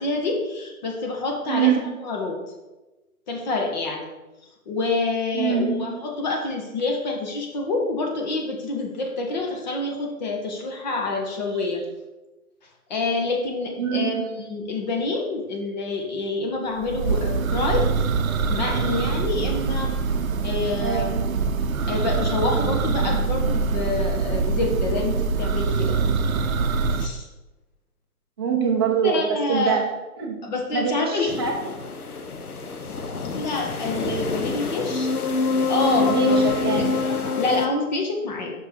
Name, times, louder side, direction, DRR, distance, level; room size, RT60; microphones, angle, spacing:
voice 1, 0.0-1.7 2.0-2.4 3.3-4.1 4.7-11.8 12.9-17.9 18.5-19.9 20.4-21.1 21.9-26.0 26.9-27.3 29.0-29.8 30.4-31.3 33.4-35.1 35.4-36.4 36.8-38.5, left 3 dB, 30° left, 1 dB, 1.0 m, -27 dB
voice 2, 1.5-2.0 5.3-6.0 11.6-11.7 13.8-14.1 20.8-21.2 28.4-29.9 30.2-31.6 36.1-36.9, right 7 dB, 15° right, 0 dB, 0.6 m, -24 dB
Church bell, 16.8-27.1, right 4 dB, 65° right, 0.7 m, -24 dB
sound 1, 31.3-37.7, left 4 dB, 80° left, 0.9 m, -26 dB
5.5 x 5.2 x 4.4 m, 1.1 s
figure-of-eight pair, 135°, 44 cm